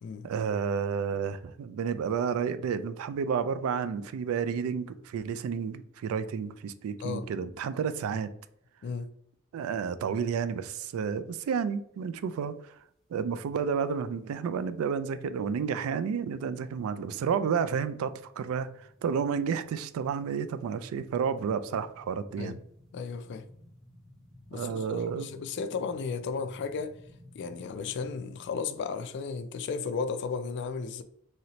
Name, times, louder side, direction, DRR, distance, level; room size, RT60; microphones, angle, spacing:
voice 1, 0.2-8.3 9.5-12.7 13.1-22.6 24.5-25.3, right 6 dB, 80° right, 0.3 m, -31 dB
sound 1, 16.6-28.5, left 1 dB, ahead, 0.5 m, -55 dB
voice 2, 22.9-23.4 24.5-27.0 27.3-31.0, left 5 dB, 55° left, 0.3 m, -34 dB
3.1 x 2.7 x 2.9 m
head